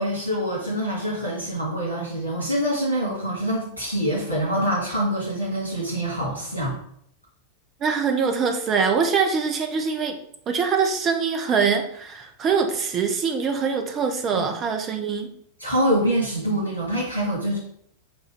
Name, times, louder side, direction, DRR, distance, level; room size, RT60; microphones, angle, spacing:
voice 1, 0.0-6.8 14.3-14.4 15.6-17.6, equal, 85° right, -8 dB, 2.4 m, -25 dB
voice 2, 7.8-10.2 10.5-15.3, right 5 dB, 30° right, 6 dB, 1.1 m, -23 dB
7.9 x 2.8 x 6.0 m, 0.67 s
figure-of-eight pair, 90°, 0 cm